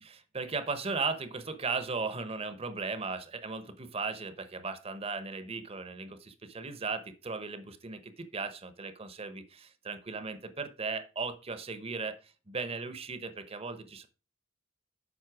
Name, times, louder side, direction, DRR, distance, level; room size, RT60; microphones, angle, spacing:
voice 1, 0.0-14.1, right 4 dB, 30° right, 11 dB, 0.8 m, -37 dB
7.6 x 5.5 x 4.7 m, 0.33 s
head